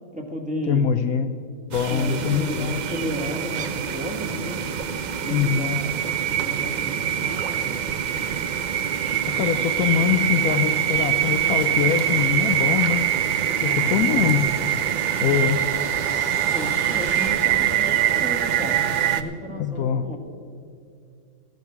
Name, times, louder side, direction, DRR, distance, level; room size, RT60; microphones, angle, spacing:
voice 1, 0.1-0.9 1.9-4.6 5.2-5.9 6.3-7.8 13.6-14.3 16.3-18.8 19.1-20.2, equal, 5° right, 0 dB, 1.6 m, -33 dB
voice 2, 0.7-1.3 1.7-2.8 5.3-5.8 9.4-13.1 13.6-14.5 15.2-15.6 19.5-20.2, left 9 dB, 70° left, 9 dB, 1.0 m, -23 dB
sound 1, 1.7-19.2, right 5 dB, 85° right, 0.4 m, -31 dB
sound 2, 1.9-19.2, right 12 dB, 70° right, 0.7 m, -25 dB
sound 3, 5.5-17.3, right 1 dB, 50° right, 2.5 m, -42 dB
14.5 x 10.5 x 5.9 m, 2.4 s
omnidirectional pair, 1.7 m